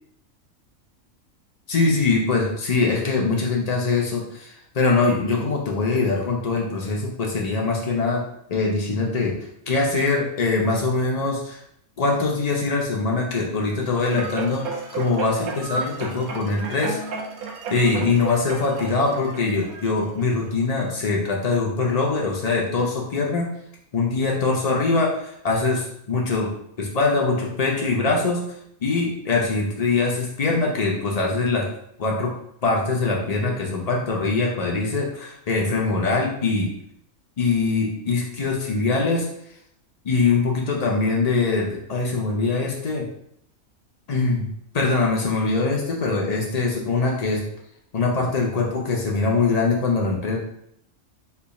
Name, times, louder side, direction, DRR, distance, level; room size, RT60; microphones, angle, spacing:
voice 1, 1.7-8.2 8.5-9.3 9.7-11.6 12.0-14.6 14.9-17.0 17.7-23.5 23.9-26.5 26.8-28.4 28.8-31.6 32.0-32.3 32.6-36.7 37.4-39.3 40.0-43.1 44.1-44.5 44.7-47.4 47.9-50.4, left 3 dB, 65° left, -2 dB, 0.4 m, -23 dB
sound 1, 13.9-20.5 21.0-21.1, right 4 dB, 85° right, 1.1 m, -33 dB
3.2 x 2.3 x 4.0 m, 0.72 s
omnidirectional pair, 1.5 m